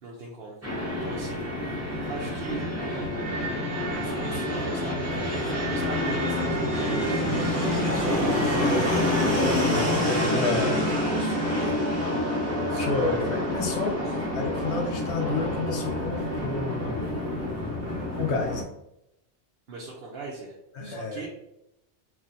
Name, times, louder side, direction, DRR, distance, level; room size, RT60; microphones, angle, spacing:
voice 1, 0.0-1.6 2.1-3.3 3.9-9.9 10.3-11.8 12.7-13.3 19.7-21.3, right 3 dB, 60° right, -3 dB, 0.8 m, -39 dB
Fixed-wing aircraft airplane, 0.6-18.6, left 1 dB, 15° right, 0.8 m, -27 dB
voice 2, 10.3-10.8 12.8-14.0 14.3-17.2 18.2-18.7 20.7-21.3, left 3 dB, 75° left, 3 dB, 0.9 m, -30 dB
4.2 x 2.6 x 2.5 m, 0.85 s
omnidirectional pair, 1.2 m